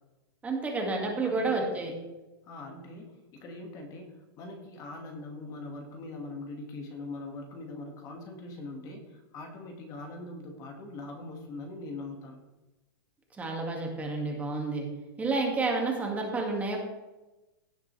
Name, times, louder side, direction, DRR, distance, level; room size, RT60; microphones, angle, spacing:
voice 1, 0.4-1.9 13.4-14.8 15.2-16.8, right 3 dB, 10° right, 0 dB, 2.1 m, -30 dB
voice 2, 1.2-1.7 2.4-12.4, left 2 dB, 30° left, 3 dB, 1.9 m, -42 dB
17.0 x 7.4 x 3.3 m, 1.1 s
supercardioid pair, 150°, 12 cm